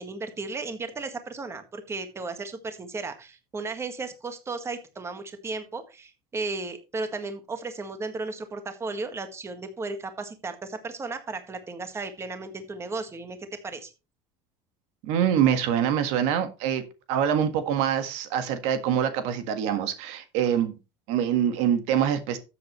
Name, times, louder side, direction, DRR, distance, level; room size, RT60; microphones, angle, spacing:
voice 1, 0.0-13.4 13.6-13.9, right 3 dB, 20° right, 8 dB, 1.7 m, -35 dB
voice 2, 15.0-16.8 17.1-20.7 21.1-22.4, right 9 dB, 75° right, 9 dB, 1.7 m, -25 dB
13.0 x 7.8 x 3.2 m, 0.28 s
supercardioid pair, 115°, 12 cm